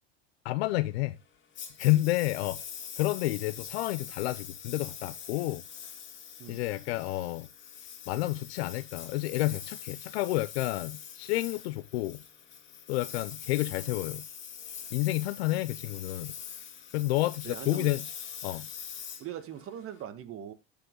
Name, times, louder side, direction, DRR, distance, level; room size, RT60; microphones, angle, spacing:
voice 1, 0.4-1.2 1.8-2.6 3.0-5.6 6.5-7.5 8.1-12.2 12.9-14.2 14.9-16.3 16.9-18.0 18.4-18.7, left 18 dB, 85° left, 0.6 m, -30 dB
Engine, 1.6-20.0, left 7 dB, 40° left, 2.2 m, -43 dB
voice 2, 17.4-17.9 19.2-20.5, right 10 dB, 45° right, 1.6 m, -40 dB
13.5 x 5.2 x 3.8 m
supercardioid pair, 110°, 30 cm